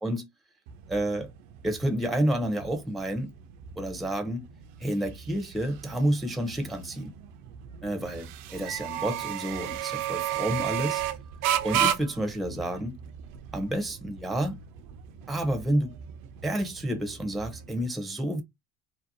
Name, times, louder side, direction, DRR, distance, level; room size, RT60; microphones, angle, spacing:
sound 1, 0.7-17.9, right 11 dB, 65° right, 0.5 m, -34 dB
voice 1, 0.9-1.3 1.6-3.3 3.8-4.4 4.8-7.1 7.8-11.0 11.6-13.0 13.5-14.6 15.3-15.9 16.4-18.4, right 1 dB, ahead, 0.5 m, -29 dB
2.7 x 2.0 x 2.6 m
hypercardioid pair, 80°, 37 cm